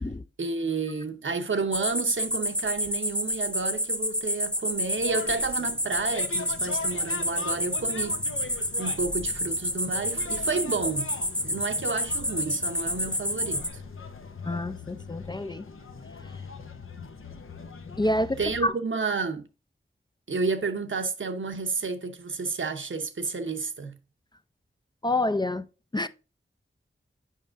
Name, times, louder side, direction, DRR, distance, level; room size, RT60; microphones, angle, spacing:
voice 1, 0.4-8.2 8.8-11.1 11.4-13.8 18.4-19.5 20.3-23.9, right 4 dB, 65° right, 0.8 m, -31 dB
sound 1, 1.7-13.7, equal, 5° left, 0.9 m, -29 dB
sound 2, 5.0-18.7, left 4 dB, 75° left, 0.8 m, -41 dB
voice 2, 14.4-15.7 18.0-18.7 25.0-25.6 25.9-26.1, left 1 dB, 20° left, 0.4 m, -27 dB
7.4 x 5.3 x 2.5 m
wide cardioid pair, 55°, 21 cm